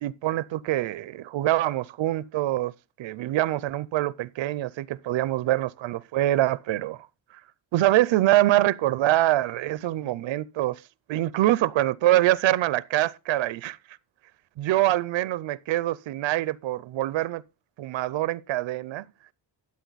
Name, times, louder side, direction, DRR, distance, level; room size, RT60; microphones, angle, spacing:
voice 1, 0.0-2.7 3.0-7.1 7.7-10.8 11.1-13.8 14.6-17.4 17.8-19.0, right 15 dB, 90° right, 0.6 m, -24 dB
13.0 x 8.4 x 4.0 m
wide cardioid pair, 145°, 44 cm